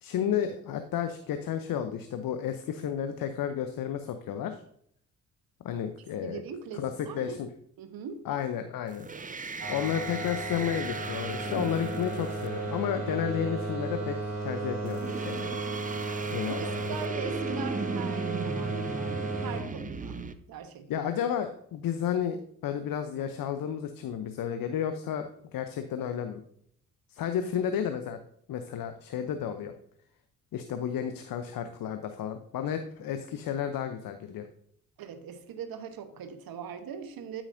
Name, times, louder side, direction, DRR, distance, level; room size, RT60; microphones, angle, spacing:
voice 1, 0.0-4.6 5.6-6.4 6.8-7.5 8.2-9.1 9.7-15.5 16.3-17.0 20.9-26.4 27.1-28.2 28.5-29.7 30.5-34.5, left 9 dB, 50° left, 8 dB, 0.9 m, -32 dB
voice 2, 6.2-7.4 7.8-8.3 16.2-20.2 20.5-21.1 35.0-37.4, right 6 dB, 55° right, 9 dB, 1.2 m, -41 dB
sound 1, 8.9-13.4 14.9-20.3, right 4 dB, 20° right, 0.8 m, -38 dB
sound 2, 9.6-19.6, right 2 dB, 35° right, 2.5 m, -34 dB
12.5 x 6.0 x 2.7 m, 0.66 s
figure-of-eight pair, 45°, 42 cm